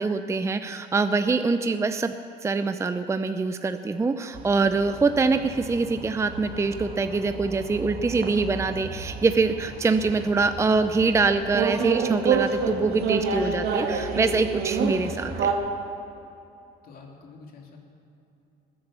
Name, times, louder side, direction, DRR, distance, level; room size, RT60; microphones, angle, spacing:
voice 1, 0.0-2.1 2.4-15.5, right 4 dB, 15° right, 9 dB, 0.6 m, -24 dB
sound 1, 4.3-15.5, right 5 dB, 70° right, 2.2 m, -30 dB
voice 2, 16.8-17.8, left 4 dB, 60° left, 0 dB, 3.1 m, -47 dB
19.5 x 10.5 x 7.0 m, 2.7 s
cardioid pair, 110°, 17 cm